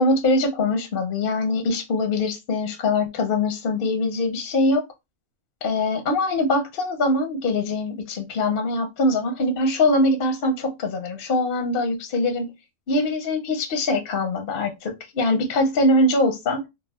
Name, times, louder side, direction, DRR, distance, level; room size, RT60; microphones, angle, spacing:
voice 1, 0.0-4.8 5.6-12.5 12.9-16.7, left 2 dB, 50° left, 0.7 m, -22 dB
4.2 x 2.0 x 2.3 m
omnidirectional pair, 1.5 m